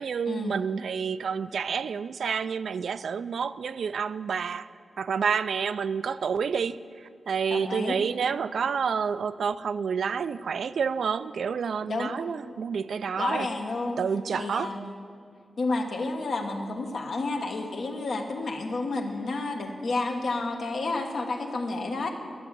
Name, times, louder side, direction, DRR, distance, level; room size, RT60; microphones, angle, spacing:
voice 1, 0.0-4.7 5.0-13.5 14.0-14.7, right 6 dB, 90° right, 14 dB, 0.3 m, -29 dB
voice 2, 7.5-8.0 11.8-12.1 13.2-14.0 14.3-14.9 15.6-22.1, left 3 dB, 75° left, 2 dB, 1.3 m, -30 dB
11.5 x 7.1 x 8.0 m, 2.4 s
wide cardioid pair, 110°, 0 cm